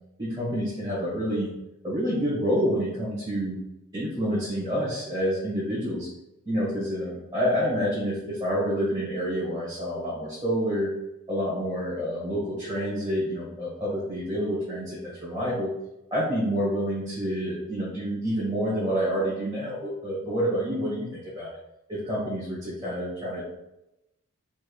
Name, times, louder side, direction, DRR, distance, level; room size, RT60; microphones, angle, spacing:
voice 1, 0.2-1.5 1.8-3.6 3.9-6.1 6.4-10.9 11.3-15.7 16.1-21.1 21.3-21.5 21.9-23.4, equal, 20° right, -10 dB, 1.6 m, -28 dB
5.0 x 4.4 x 2.3 m, 0.90 s
head